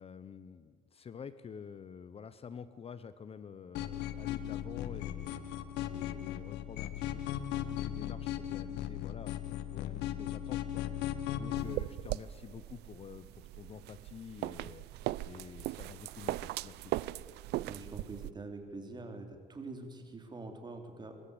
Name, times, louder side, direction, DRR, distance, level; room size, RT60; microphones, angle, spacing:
voice 1, 0.0-5.5 5.9-14.8 15.2-16.9, left 6 dB, 35° left, 14 dB, 0.8 m, -49 dB
sound 1, 3.7-11.7, left 11 dB, 90° left, 1.2 m, -37 dB
sound 2, 11.6-18.3, right 17 dB, 80° right, 0.5 m, -39 dB
voice 2, 17.6-21.2, right 3 dB, 25° right, 5 dB, 3.1 m, -45 dB
23.0 x 13.5 x 8.6 m, 2.1 s
cardioid pair, 110°, 17 cm